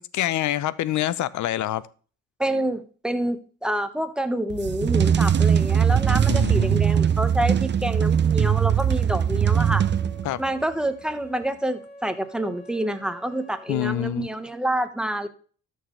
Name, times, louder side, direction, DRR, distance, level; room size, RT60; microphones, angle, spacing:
voice 1, 0.0-1.8 6.3-6.8 10.2-10.4 13.7-14.3, left 13 dB, 75° left, 0.7 m, -26 dB
voice 2, 2.4-9.8 10.4-15.3, right 1 dB, 5° right, 1.2 m, -27 dB
sound 1, 4.5-10.5, right 8 dB, 35° right, 0.7 m, -21 dB
Wind instrument woodwind instrument, 9.5-14.0, equal, 35° left, 5.1 m, -46 dB
13.0 x 6.5 x 3.2 m
cardioid pair, 90°, 30 cm